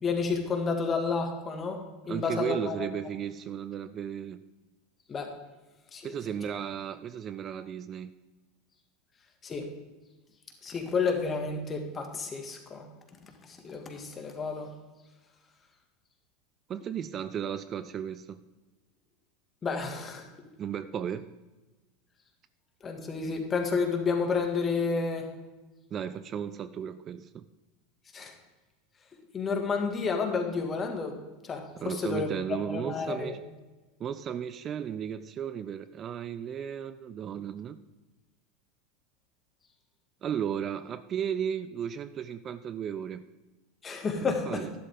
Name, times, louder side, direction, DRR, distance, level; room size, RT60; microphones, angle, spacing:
voice 1, 0.0-1.8 2.1-2.9 5.1-5.3 5.9-6.0 9.4-9.7 10.6-12.9 13.4-14.7 19.6-20.3 22.8-25.3 28.1-28.3 29.3-31.1 31.4-32.3 32.7-33.3 43.8-44.6, left 4 dB, 25° left, 4 dB, 2.2 m, -30 dB
voice 2, 2.1-4.4 6.0-8.1 16.7-18.4 20.6-21.3 25.9-27.4 31.8-33.4 34.0-37.8 40.2-43.2 44.2-44.7, right 8 dB, 35° right, 14 dB, 0.4 m, -35 dB
12.0 x 11.0 x 3.8 m, 1.2 s
hypercardioid pair, 85°, 0 cm